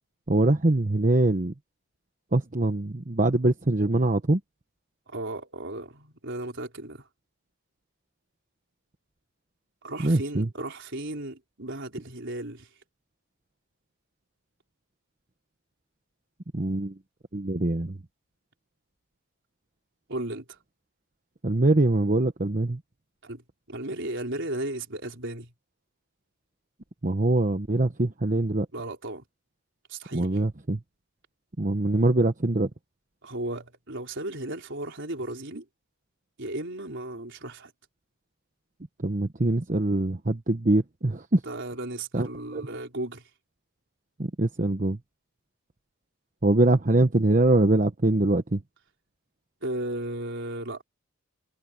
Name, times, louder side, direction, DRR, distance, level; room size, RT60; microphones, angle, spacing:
voice 1, 0.3-1.5 2.3-4.4 10.0-10.5 16.5-16.9 17.3-18.0 21.4-22.8 27.0-28.7 30.1-30.8 31.6-32.7 39.0-41.4 42.1-42.3 42.5-42.6 44.2-45.0 46.4-48.6, right 2 dB, 35° right, 1.0 m, -23 dB
voice 2, 5.1-7.1 9.8-12.7 20.1-20.6 23.2-23.4 23.7-25.5 28.7-29.2 29.9-30.3 33.2-35.7 36.4-37.7 41.4-43.2 49.6-50.8, right 1 dB, 55° right, 4.7 m, -35 dB
head